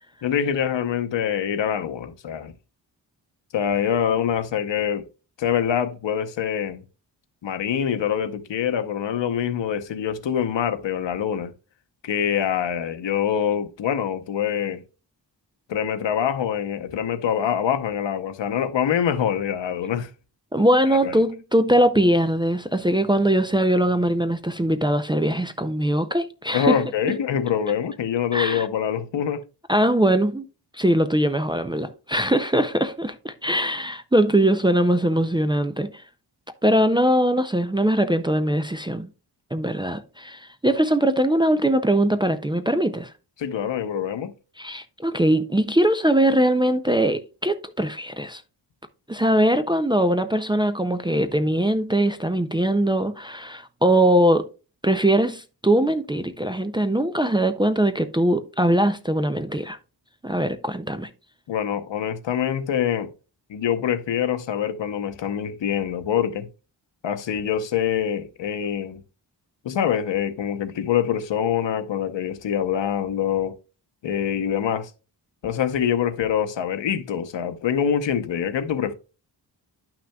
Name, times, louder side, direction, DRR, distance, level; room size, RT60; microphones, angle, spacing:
voice 1, 0.2-2.5 3.5-5.1 5.4-6.8 7.4-11.5 12.0-14.8 15.7-20.1 21.0-21.1 26.5-29.4 43.4-44.3 61.5-63.1 63.5-66.5 67.0-69.0 69.6-73.5 74.0-74.9 75.4-78.9, left 8 dB, 85° left, 0.9 m, -25 dB
voice 2, 20.5-26.8 28.3-28.6 29.7-30.4 30.8-35.9 36.6-39.1 39.5-43.1 44.6-48.4 49.1-54.5 54.8-59.8 60.2-61.1, right 1 dB, 10° right, 0.3 m, -21 dB
11.0 x 5.9 x 2.2 m
wide cardioid pair, 165°, 43 cm